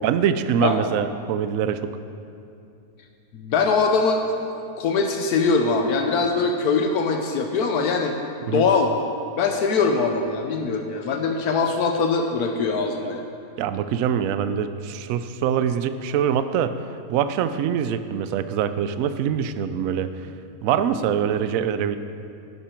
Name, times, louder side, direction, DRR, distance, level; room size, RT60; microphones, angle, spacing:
voice 1, 0.0-1.9 8.5-8.7 13.6-16.7 17.1-20.1 20.6-22.0, right 8 dB, 70° right, 11 dB, 0.9 m, -24 dB
voice 2, 3.3-4.2 4.5-8.1 8.5-8.9 9.3-13.3 20.9-21.0, left 4 dB, 85° left, 4 dB, 1.3 m, -22 dB
11.0 x 10.0 x 4.4 m, 2.5 s
omnidirectional pair, 1.6 m